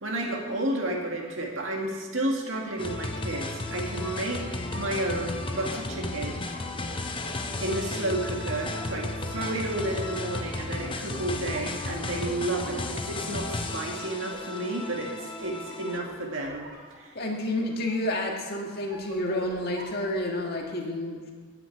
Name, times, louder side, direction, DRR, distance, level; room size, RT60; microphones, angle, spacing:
voice 1, 0.0-6.4 7.6-16.6 17.0-17.1, right 1 dB, 60° right, 0 dB, 2.1 m, -31 dB
sound 1, 0.9-20.6, right 1 dB, 45° right, 3.4 m, -48 dB
sound 2, 2.8-16.3, left 2 dB, 25° left, 0.7 m, -34 dB
voice 2, 17.2-21.3, left 1 dB, 45° left, 0 dB, 1.7 m, -30 dB
9.4 x 7.5 x 8.5 m, 1.5 s
head